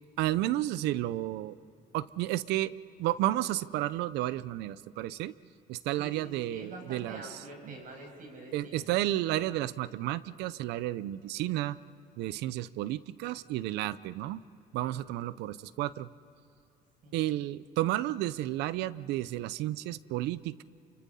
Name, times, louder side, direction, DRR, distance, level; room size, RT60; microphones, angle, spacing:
voice 1, 0.2-1.6 1.9-2.7 3.0-5.3 5.7-7.2 7.7-7.8 8.5-11.8 12.2-14.4 14.7-16.1 17.1-20.6, right 15 dB, 85° right, 18 dB, 0.6 m, -32 dB
voice 2, 6.0-8.9 17.0-17.2, right 2 dB, 55° right, 2 dB, 7.2 m, -45 dB
29.0 x 25.0 x 5.6 m, 2.7 s
cardioid pair, 110°, 17 cm